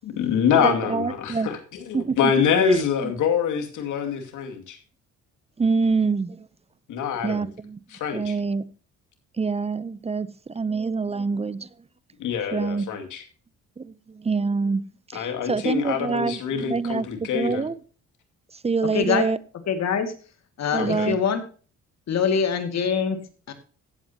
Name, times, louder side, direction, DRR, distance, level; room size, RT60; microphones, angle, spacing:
voice 1, 0.0-4.8 6.9-7.5 7.9-8.3 12.2-13.2 15.1-17.7 20.7-21.1, left 7 dB, 80° left, 5 dB, 2.5 m, -25 dB
voice 2, 0.6-1.5 1.9-2.3 2.6-2.8 5.6-6.5 7.2-7.8 8.1-8.6 9.4-11.7 12.5-12.9 13.8-14.8 15.1-17.8 18.6-19.4 20.7-21.2, right 4 dB, 20° right, 19 dB, 0.6 m, -26 dB
voice 3, 18.8-19.3 19.7-20.1 20.6-21.4 22.1-23.2 23.5-23.6, left 6 dB, 60° left, 8 dB, 2.3 m, -24 dB
15.0 x 8.7 x 2.9 m, 0.39 s
cardioid pair, 90°, 30 cm